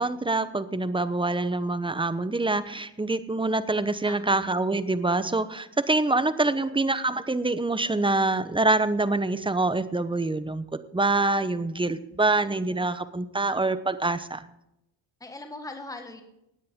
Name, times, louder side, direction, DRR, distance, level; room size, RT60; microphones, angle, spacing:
voice 1, 0.0-10.7 10.9-14.4, right 2 dB, 10° right, 13 dB, 0.8 m, -25 dB
voice 2, 4.1-4.5 6.4-6.8 15.2-16.2, left 2 dB, 10° left, 5 dB, 1.7 m, -41 dB
17.0 x 9.5 x 3.7 m, 0.83 s
cardioid pair, 80°, 44 cm